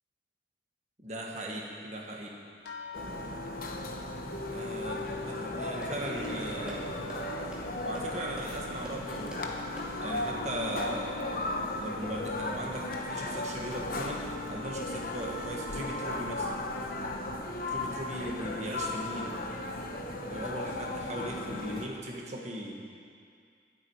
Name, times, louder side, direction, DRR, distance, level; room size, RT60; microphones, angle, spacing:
voice 1, 1.0-2.4 4.5-6.9 7.8-9.4 10.0-11.4 11.8-16.5 17.7-19.3 20.2-22.7, right 1 dB, 40° right, -1 dB, 1.9 m, -38 dB
sound 1, 2.6-11.5 11.8-12.7 13.4-13.5 13.9-14.1, left 2 dB, 75° left, 1.1 m, -51 dB
sound 2, 2.9-21.9, left 2 dB, 50° left, 1.0 m, -36 dB
sound 3, 5.4-10.3, equal, 5° right, 2.5 m, -48 dB
23.0 x 8.1 x 4.8 m, 2.3 s
head